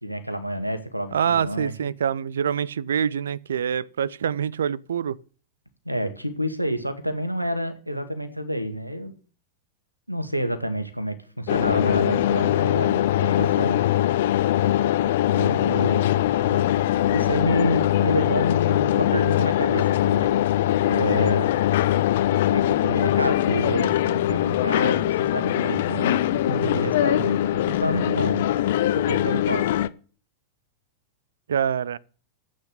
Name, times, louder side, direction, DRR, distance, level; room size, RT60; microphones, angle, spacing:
voice 1, 0.0-1.7 5.9-9.1 10.1-13.8 15.3-16.2 16.5-16.7 17.1-20.4 20.9-21.5 22.5-28.4 29.0-29.7, equal, 90° right, 2.1 m, -28 dB
voice 2, 1.1-5.2 31.5-32.0, right 8 dB, 65° right, 0.6 m, -25 dB
sound 1, 11.5-29.9, left 13 dB, 55° left, 0.7 m, -22 dB
13.0 x 8.8 x 8.4 m
figure-of-eight pair, 90°, 0 cm